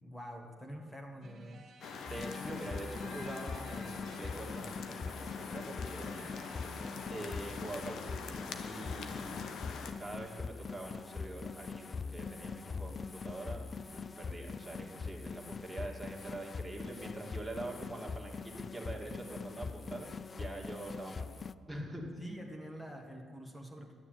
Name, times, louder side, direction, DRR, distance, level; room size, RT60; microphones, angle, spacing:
voice 1, 0.0-1.6 21.7-24.0, equal, 10° left, 2 dB, 1.8 m, -46 dB
sound 1, 1.2-4.7 5.9-7.3, right 4 dB, 55° right, 1.9 m, -56 dB
sound 2, 1.8-9.9, left 5 dB, 70° left, 1.0 m, -44 dB
sound 3, 2.1-21.5, left 5 dB, 35° left, 0.3 m, -43 dB
voice 2, 2.1-6.3 7.1-9.5 10.0-22.3, right 1 dB, 5° right, -1 dB, 2.4 m, -44 dB
11.0 x 6.9 x 9.1 m, 2.2 s
cardioid pair, 90°, 0 cm